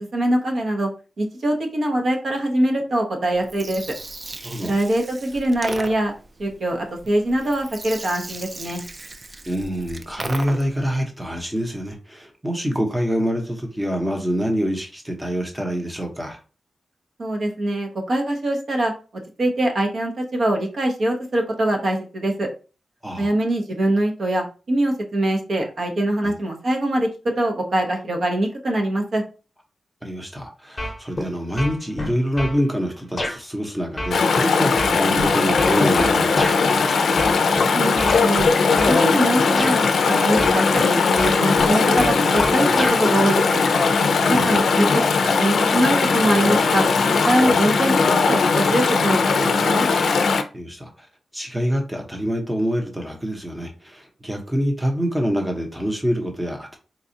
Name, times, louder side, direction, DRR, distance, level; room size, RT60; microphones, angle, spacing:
voice 1, 0.1-0.9 1.2-3.8 4.6-6.1 6.4-8.8 17.2-18.9 19.4-22.5 23.2-29.2 37.7-38.5 38.9-39.8 40.1-43.6 44.3-44.9 45.4-46.9 47.2-48.0 48.2-49.9, right 1 dB, 55° right, 1 dB, 0.8 m, -23 dB
Gurgling, 3.3-10.9, right 2 dB, 30° right, 0.3 m, -36 dB
voice 2, 9.5-16.4 23.0-23.3 26.2-26.3 30.0-36.9 44.2-44.6 47.4-47.6 50.5-51.1 51.3-56.8, equal, 10° right, 2 dB, 0.8 m, -26 dB
sound 1, 30.8-31.3 31.6-32.6 33.2-33.4 34.0-36.6 37.2-37.6 38.0-39.0 39.6-39.8 40.4-40.9 41.2-43.0, left 1 dB, 25° left, 0.8 m, -28 dB
Chatter / Stream, 34.1-50.4, left 4 dB, 80° left, 0.4 m, -19 dB
4.0 x 2.3 x 2.7 m, 0.35 s
wide cardioid pair, 115°, 0 cm